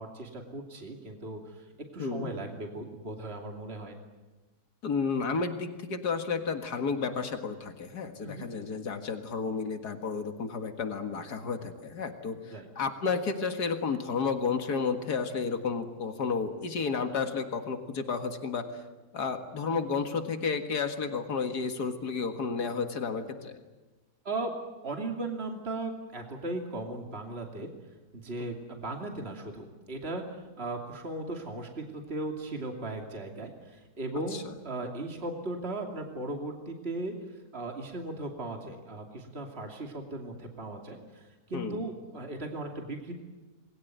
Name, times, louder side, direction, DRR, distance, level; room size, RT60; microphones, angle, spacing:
voice 1, 0.0-1.7 1.9-3.9 8.2-8.5 12.4-12.7 24.2-24.5 24.8-27.7 28.1-43.1, right 2 dB, 40° right, 2 dB, 3.0 m, -37 dB
voice 2, 2.0-2.3 4.8-18.8 19.1-23.6 34.3-34.4 41.5-41.8, left 5 dB, 90° left, 6 dB, 2.4 m, -32 dB
28.0 x 21.5 x 9.4 m, 1.2 s
omnidirectional pair, 1.7 m